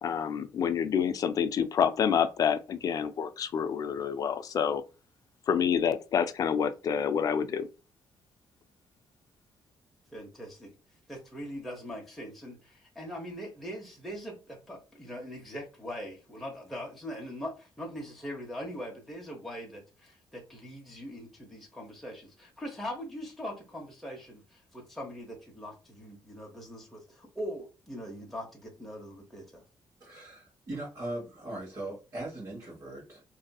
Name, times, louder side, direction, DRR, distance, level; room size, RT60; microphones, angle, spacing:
voice 1, 0.0-4.8 5.5-7.7, left 7 dB, 50° left, 0.4 m, -28 dB
voice 2, 10.1-10.7 11.1-29.6, equal, ahead, 0.9 m, -41 dB
voice 3, 30.0-33.2, right 1 dB, 40° right, 1.3 m, -39 dB
2.7 x 2.6 x 2.2 m
cardioid pair, 130°, 8 cm